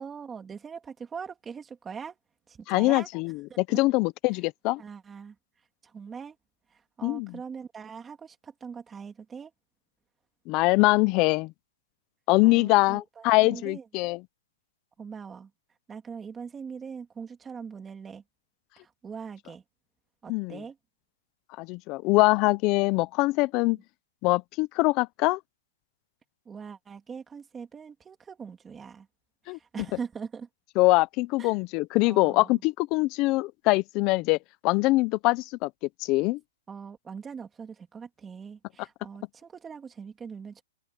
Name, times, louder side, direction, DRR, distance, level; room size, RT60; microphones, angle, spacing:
voice 1, 0.0-2.2 2.5-3.1 3.5-3.8 4.8-5.4 5.8-6.4 6.7-9.5 12.4-13.8 15.0-15.5 15.9-18.2 18.8-19.6 20.2-20.8 23.7-23.8 26.4-29.1 29.5-30.5 31.4-31.6 32.0-32.6 36.7-40.6, right 6 dB, 10° right, 3.1 m, -41 dB
voice 2, 2.7-4.8 7.0-7.3 10.5-11.5 12.3-14.2 20.3-20.6 21.6-23.8 24.2-25.4 29.5-29.6 30.8-34.4 34.6-35.7 36.0-36.4, left 22 dB, 25° left, 0.6 m, -23 dB
open air
hypercardioid pair, 165°, 0 cm